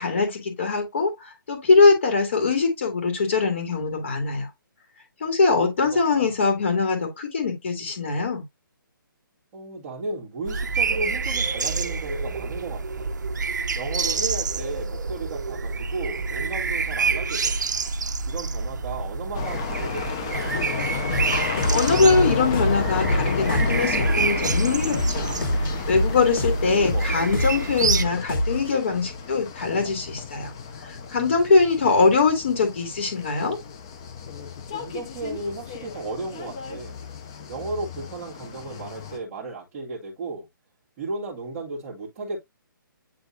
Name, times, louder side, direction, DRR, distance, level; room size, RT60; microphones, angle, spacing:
voice 1, 0.0-4.5 5.2-8.4 21.4-25.4 25.9-30.5 30.8-33.6, left 4 dB, 35° left, 2.4 m, -22 dB
voice 2, 5.8-6.4 9.5-13.1 13.7-17.6 18.2-20.8 26.4-27.3 34.8-37.0 37.5-40.5 41.0-42.4, right 3 dB, 10° right, 2.1 m, -34 dB
sound 1, 10.4-28.0, right 4 dB, 55° right, 1.0 m, -28 dB
sound 2, 19.3-39.2, left 6 dB, 15° left, 0.5 m, -32 dB
sound 3, 21.1-28.8, equal, 80° left, 2.6 m, -27 dB
10.0 x 3.5 x 2.6 m
hypercardioid pair, 180°, 11 cm